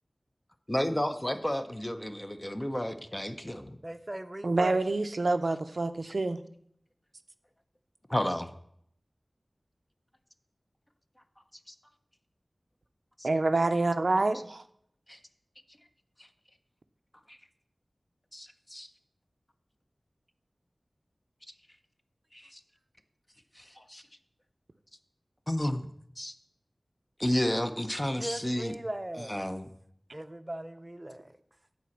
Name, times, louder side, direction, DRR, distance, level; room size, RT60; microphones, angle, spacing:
voice 1, 0.7-3.8 8.1-8.5 11.7-11.8 13.2-13.3 15.1-15.2 17.3-17.4 18.3-18.9 22.3-22.6 23.6-24.0 25.5-25.9 26.2-26.3 27.2-28.7 29.1-29.7, left 1 dB, 20° left, 8 dB, 0.7 m, -32 dB
voice 2, 3.8-4.8 28.2-29.4 30.1-31.4, right 1 dB, 25° right, 11 dB, 0.6 m, -39 dB
voice 3, 4.4-6.4 13.2-14.6, right 2 dB, 75° right, 9 dB, 0.5 m, -27 dB
9.3 x 4.2 x 7.2 m, 0.70 s
wide cardioid pair, 50°, 0 cm